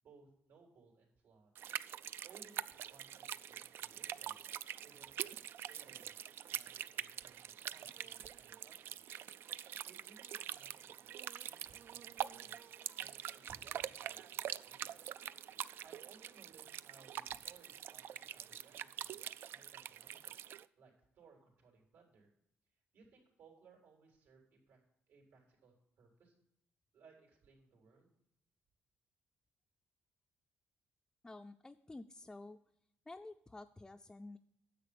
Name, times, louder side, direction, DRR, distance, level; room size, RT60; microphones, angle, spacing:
voice 1, 0.0-1.5 2.2-4.4 4.8-5.3 5.7-6.2 6.5-9.1 9.6-12.7 13.0-15.2 15.8-19.2 19.5-20.3 20.8-22.3 22.9-24.8 25.1-26.4 26.9-28.1, right 4 dB, 85° right, 0 dB, 3.9 m, -64 dB
sound 1, 1.5-20.6, right 10 dB, 65° right, 0.3 m, -45 dB
voice 2, 31.2-32.6 33.1-34.4, left 2 dB, 10° left, 4 dB, 0.4 m, -51 dB
10.0 x 7.4 x 5.0 m, 0.75 s
cardioid pair, 135°, 4 cm